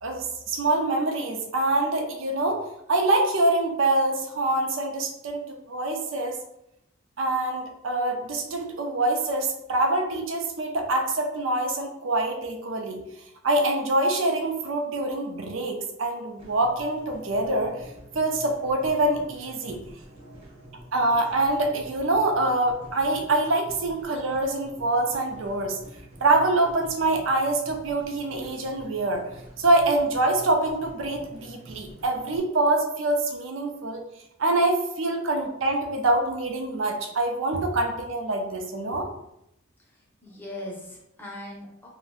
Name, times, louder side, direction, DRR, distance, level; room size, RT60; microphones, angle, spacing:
voice 1, 0.0-2.6 2.9-6.4 7.2-13.0 13.4-17.8 18.1-19.8 20.9-25.8 26.2-29.3 29.6-34.0 34.4-39.1, right 2 dB, 70° right, 3 dB, 0.5 m, -25 dB
sound 1, 16.4-32.4, right 1 dB, 30° right, 0.7 m, -47 dB
voice 2, 39.9-41.9, left 1 dB, 10° left, -3 dB, 0.6 m, -40 dB
2.5 x 2.1 x 3.7 m, 0.82 s
head